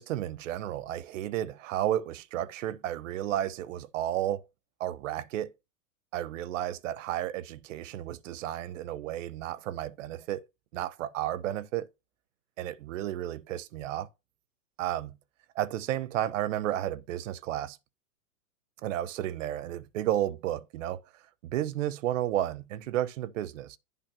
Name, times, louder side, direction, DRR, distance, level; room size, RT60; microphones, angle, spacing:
voice 1, 0.0-4.4 4.8-5.5 6.1-10.4 10.7-11.9 12.6-14.1 14.8-15.2 15.5-17.8 18.8-21.0 21.4-23.8, right 12 dB, 55° right, 0.9 m, -32 dB
10.5 x 3.5 x 6.0 m
hypercardioid pair, 155°, 44 cm